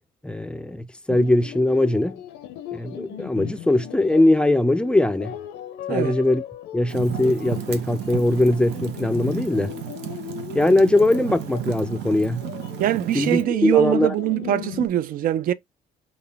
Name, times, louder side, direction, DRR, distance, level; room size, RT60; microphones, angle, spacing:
voice 1, 0.2-2.2 2.7-5.3 5.9-6.4 6.7-9.7 10.5-12.4 13.1-14.1, left 1 dB, 5° left, 0.4 m, -21 dB
sound 1, 1.1-14.9, left 11 dB, 80° left, 0.6 m, -38 dB
Fire, 6.9-13.4, right 10 dB, 85° right, 0.8 m, -34 dB
voice 2, 12.8-15.5, right 13 dB, 55° right, 0.4 m, -22 dB
3.8 x 2.3 x 3.4 m
cardioid pair, 110°, 17 cm